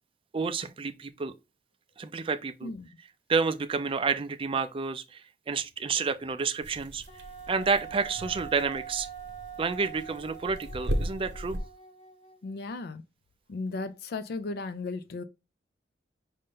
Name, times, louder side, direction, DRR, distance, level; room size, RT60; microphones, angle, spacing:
voice 1, 0.3-1.3 2.0-2.7 3.3-5.2 5.5-7.0 7.5-9.1 9.6-11.6, right 5 dB, 30° right, 0.4 m, -29 dB
sound 1, 6.6-11.6, equal, 75° right, 0.9 m, -37 dB
Wind instrument woodwind instrument, 7.1-12.5, right 8 dB, 35° left, 1.0 m, -44 dB
voice 2, 12.4-13.0 13.5-15.2, left 3 dB, 60° left, 0.4 m, -35 dB
5.4 x 2.5 x 3.6 m
head